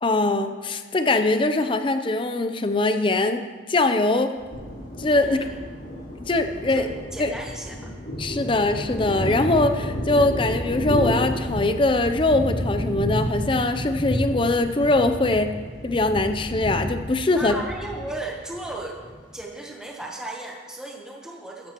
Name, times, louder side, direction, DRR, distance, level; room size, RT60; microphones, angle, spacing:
voice 1, 0.0-3.4 3.7-4.3 5.0-5.4 6.3-6.9 7.2-7.3 8.2-15.6 15.8-17.6, left 2 dB, 25° left, 8 dB, 0.5 m, -22 dB
Bird vocalization bird call bird song, 4.3-13.8, equal, 40° right, 3.5 m, -49 dB
Thunder, 4.5-19.3, equal, 60° left, 3.5 m, -30 dB
voice 2, 5.2-5.6 6.7-7.9 17.3-19.0 19.3-21.7, right 2 dB, 5° right, -1 dB, 0.9 m, -35 dB
14.0 x 13.0 x 3.0 m, 1.5 s
head